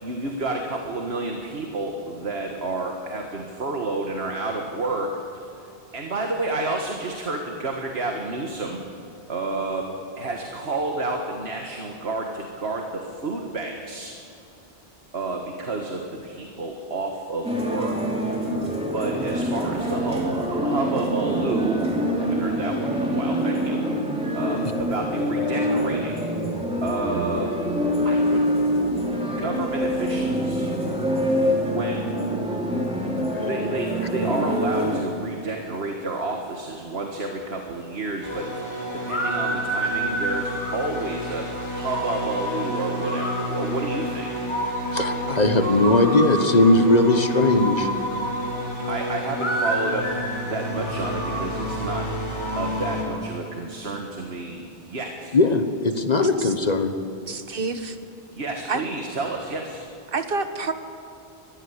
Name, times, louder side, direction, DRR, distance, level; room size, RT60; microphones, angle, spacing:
voice 1, 0.0-14.1 15.1-18.1 18.9-23.8 24.3-26.3 26.8-27.5 28.0-28.5 29.3-30.7 31.6-32.1 33.4-44.4 48.4-50.1 50.5-52.1 52.6-55.4 58.3-59.9, right 2 dB, 85° right, 2 dB, 1.9 m, -30 dB
sound 1, 17.4-35.0, equal, 5° right, 3.1 m, -25 dB
sound 2, 38.2-53.0, equal, 25° left, 4.3 m, -28 dB
voice 2, 44.9-47.9 55.3-56.9, left 2 dB, 40° left, 7 dB, 1.3 m, -19 dB
voice 3, 57.3-58.0 58.7-58.8 60.1-60.7, right 4 dB, 60° right, 8 dB, 1.5 m, -28 dB
20.5 x 15.0 x 8.3 m, 2.8 s
omnidirectional pair, 1.0 m